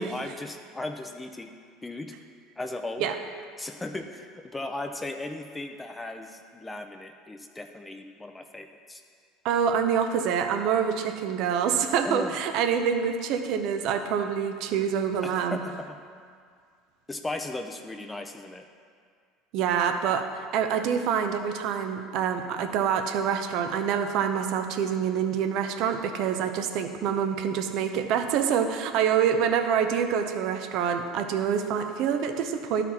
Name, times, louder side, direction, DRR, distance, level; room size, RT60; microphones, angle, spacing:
voice 1, 0.0-1.5 1.8-2.1 2.6-3.1 3.6-9.0 12.0-12.3 15.2-16.0 17.1-18.6, left 2 dB, 15° left, 5 dB, 0.5 m, -36 dB
voice 2, 9.4-15.6 19.5-32.8, right 7 dB, 65° right, 7 dB, 0.7 m, -26 dB
12.0 x 4.1 x 4.2 m, 2.1 s
supercardioid pair, 90°, 0 cm